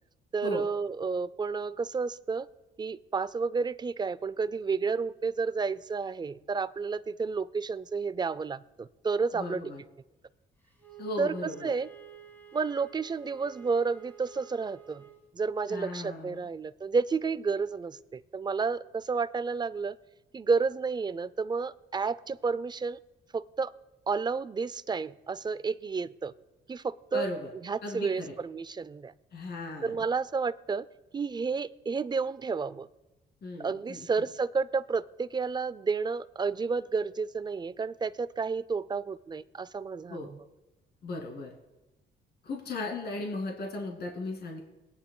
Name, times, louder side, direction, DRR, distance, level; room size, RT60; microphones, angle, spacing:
voice 1, 0.3-2.5 2.8-9.6 11.2-11.9 12.5-15.0 15.3-20.0 20.3-23.0 23.3-23.7 24.1-26.3 26.7-27.3 27.6-29.1 29.8-30.8 31.1-32.9 33.6-40.4, right 4 dB, 20° right, 17 dB, 0.4 m, -31 dB
voice 2, 9.3-9.8 11.0-11.7 15.7-16.5 27.1-27.5 27.8-28.3 29.3-30.0 33.4-34.1 40.1-40.3 41.0-41.5 42.4-44.6, left 2 dB, 55° left, 0 dB, 2.4 m, -36 dB
Wind instrument woodwind instrument, 10.8-15.3, right 9 dB, 10° left, 1.5 m, -50 dB
20.0 x 9.7 x 2.2 m, 1.0 s
cardioid pair, 90°, 20 cm